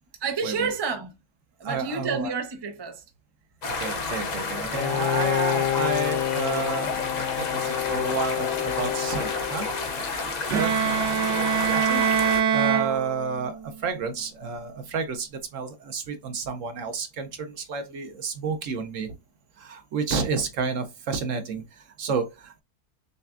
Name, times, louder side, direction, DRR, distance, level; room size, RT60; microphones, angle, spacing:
voice 1, 0.2-1.1 1.6-3.0, right 5 dB, 40° right, 0.3 m, -29 dB
voice 2, 1.6-2.3 3.8-6.9 7.4-10.2 10.5-19.1 19.6-22.6, right 5 dB, 60° right, 1.0 m, -31 dB
sound 1, 3.6-12.4, left 3 dB, 90° left, 0.3 m, -31 dB
Bowed string instrument, 4.7-10.3, left 12 dB, 70° left, 1.1 m, -28 dB
Bowed string instrument 2, 10.5-13.6, right 8 dB, 85° right, 1.1 m, -24 dB
6.6 x 2.3 x 2.4 m
omnidirectional pair, 1.7 m